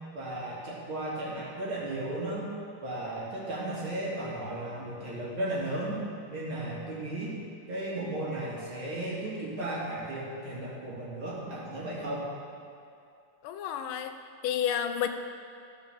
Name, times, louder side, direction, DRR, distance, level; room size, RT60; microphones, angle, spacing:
voice 1, 0.1-2.5 2.8-6.0 6.3-7.4 7.7-12.3, right 1 dB, 75° right, -6 dB, 3.2 m, -35 dB
voice 2, 13.4-14.1 14.4-15.1, left 9 dB, 90° left, 7 dB, 1.5 m, -30 dB
13.0 x 5.8 x 6.9 m, 2.5 s
omnidirectional pair, 2.2 m